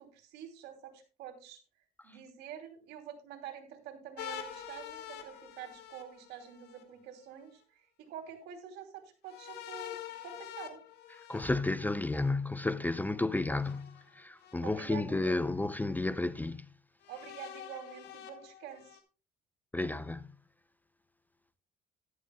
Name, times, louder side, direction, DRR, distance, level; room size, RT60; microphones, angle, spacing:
voice 1, 0.0-1.6 2.0-10.8 14.6-15.4 17.1-19.0, right 9 dB, 85° right, 2.9 m, -47 dB
sound 1, 4.2-6.8 9.3-12.3 13.6-14.5 15.3-15.4 17.0-19.0, left 10 dB, 85° left, 1.6 m, -46 dB
voice 2, 11.3-16.6 19.7-20.2, left 2 dB, 10° left, 0.4 m, -32 dB
14.0 x 11.5 x 2.3 m
cardioid pair, 110°, 17 cm